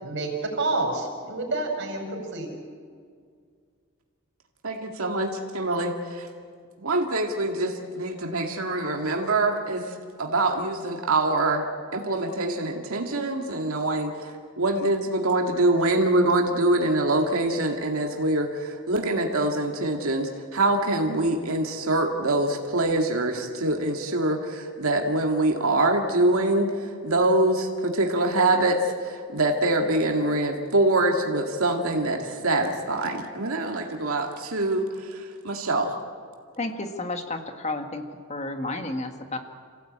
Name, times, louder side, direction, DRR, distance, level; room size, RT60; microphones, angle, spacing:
voice 1, 0.0-2.5, right 2 dB, 55° right, 2 dB, 5.1 m, -28 dB
voice 2, 4.6-6.3 6.8-11.7 11.9-36.0, right 2 dB, 80° right, 2 dB, 2.1 m, -24 dB
voice 3, 36.6-38.0 38.3-39.4, left 2 dB, 30° left, 6 dB, 1.6 m, -31 dB
27.5 x 16.5 x 8.7 m, 2.1 s
head